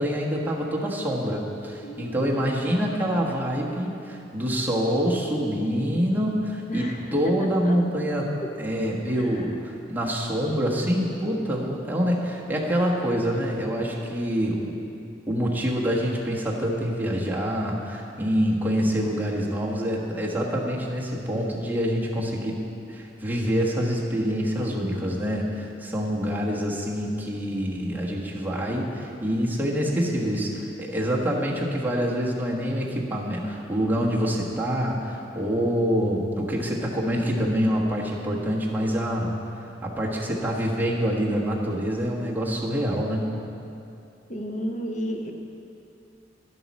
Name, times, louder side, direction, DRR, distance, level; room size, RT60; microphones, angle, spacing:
voice 1, 0.0-6.8 7.1-8.3 8.6-14.7 15.3-22.6 22.9-43.3, equal, 10° right, -4 dB, 1.3 m, -26 dB
voice 2, 1.8-2.4 2.6-2.8 6.7-7.8 8.4-8.5 9.1-9.5 44.3-45.3, equal, 40° left, 3 dB, 0.9 m, -33 dB
11.0 x 10.5 x 4.2 m, 2.7 s
head